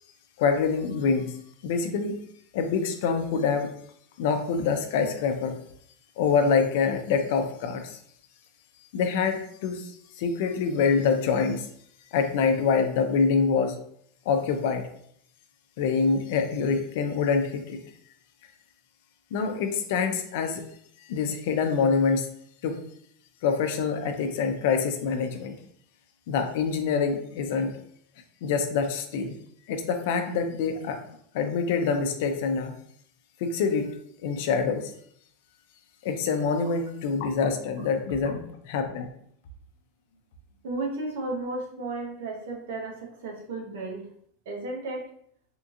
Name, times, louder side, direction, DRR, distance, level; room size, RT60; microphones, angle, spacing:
voice 1, 0.4-1.3 1.6-2.2 2.5-3.7 4.2-5.5 6.2-8.0 8.9-11.7 12.1-13.8 14.3-14.9 15.8-17.8 19.3-20.6 21.0-22.3 22.6-22.8 23.4-25.5 26.3-27.7 28.4-29.4 29.7-31.0 31.3-32.7 33.4-33.9 34.2-34.9 36.0-39.1, left 5 dB, 70° left, 6 dB, 0.5 m, -25 dB
voice 2, 40.6-44.1 44.5-45.1, right 2 dB, 80° right, 0 dB, 0.9 m, -34 dB
3.5 x 2.7 x 2.4 m, 0.66 s
supercardioid pair, 125°, 0 cm